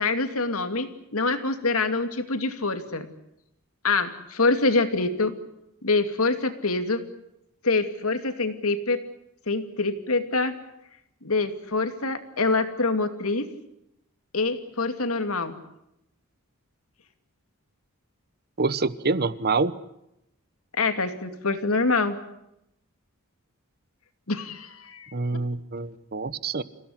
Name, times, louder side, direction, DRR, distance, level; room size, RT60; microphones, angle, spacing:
voice 1, 0.0-3.1 3.8-5.3 5.8-7.0 7.6-9.0 9.5-10.5 11.2-13.5 14.3-15.6 20.8-22.2 24.3-25.1, left 3 dB, 75° left, 8 dB, 2.6 m, -25 dB
voice 2, 18.6-19.7 25.1-26.6, right 3 dB, 45° right, 16 dB, 1.0 m, -26 dB
28.0 x 17.0 x 9.8 m, 0.83 s
head